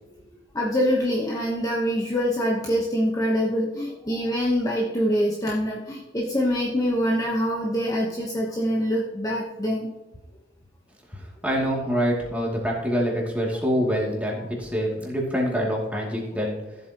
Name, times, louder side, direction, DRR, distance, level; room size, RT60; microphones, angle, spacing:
voice 1, 0.5-9.9, equal, 20° left, -3 dB, 1.0 m, -25 dB
voice 2, 11.4-16.5, equal, 10° right, -3 dB, 2.5 m, -25 dB
14.0 x 8.0 x 3.0 m, 1.0 s
head